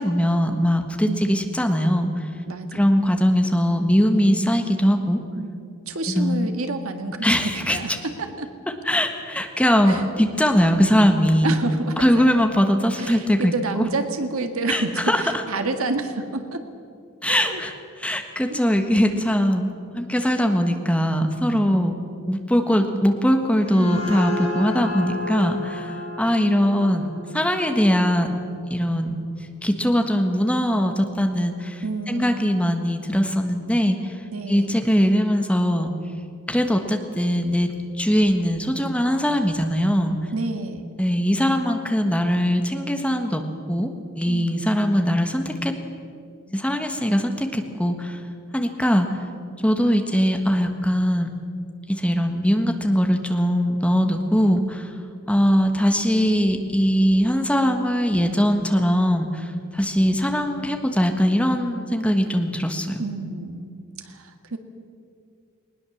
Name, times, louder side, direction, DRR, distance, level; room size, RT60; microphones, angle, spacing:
voice 1, 0.0-2.1 2.7-5.2 6.1-6.5 7.2-7.8 8.8-11.5 12.0-13.8 14.7-15.2 17.2-17.7 18.0-21.9 22.2-27.1 27.3-28.4 28.7-29.3 29.6-34.2 34.5-35.9 36.5-40.2 41.0-43.4 43.7-45.7 46.5-48.2 48.5-49.2 49.6-51.3 51.9-54.9 55.3-63.0, equal, 5° left, 5 dB, 1.4 m, -21 dB
voice 2, 2.5-3.0 5.3-8.5 9.8-10.2 11.4-12.4 13.0-16.6 17.3-17.6 18.5-18.6 20.7-20.8 21.5-21.9 23.8-24.1 31.8-32.6 34.3-34.8 40.3-40.8 44.3-44.7 63.0-63.7 64.0-64.6, right 3 dB, 75° right, 7 dB, 1.7 m, -29 dB
sound 1, 23.3-28.8, left 2 dB, 75° left, 3.1 m, -33 dB
20.0 x 20.0 x 7.2 m, 2.3 s
head